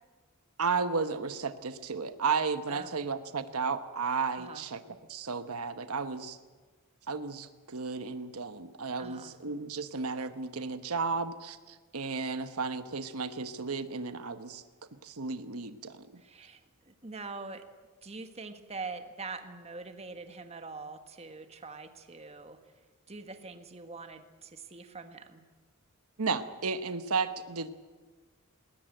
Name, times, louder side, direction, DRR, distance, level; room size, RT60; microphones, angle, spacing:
voice 1, 0.6-4.8 5.1-6.4 7.1-14.6 15.0-16.2 26.2-27.7, right 4 dB, 80° right, 10 dB, 1.1 m, -33 dB
voice 2, 9.0-9.3 16.2-17.6 18.0-22.6 23.1-25.4, right 3 dB, 30° right, 7 dB, 1.6 m, -44 dB
20.5 x 19.0 x 9.0 m, 1.4 s
head